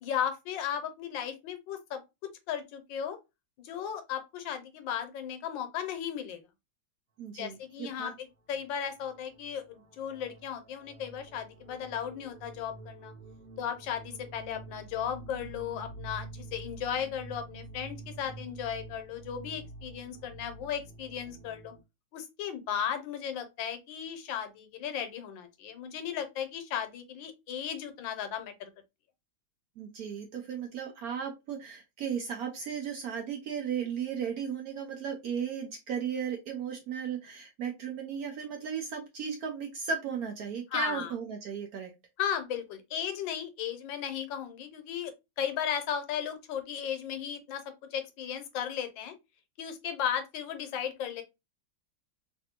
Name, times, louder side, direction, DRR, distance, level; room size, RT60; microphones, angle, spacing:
voice 1, 0.0-2.0 2.5-3.2 3.6-6.4 7.4-13.1 13.6-21.7 22.1-28.7 40.7-41.1 42.2-49.1 49.6-51.2, left 8 dB, 80° left, 1.4 m, -35 dB
voice 2, 7.2-8.1 29.8-41.9, right 7 dB, 70° right, 0.9 m, -35 dB
sound 1, 8.5-8.7 9.0-21.8, right 2 dB, 90° right, 1.5 m, -48 dB
3.3 x 2.6 x 2.8 m
omnidirectional pair, 2.1 m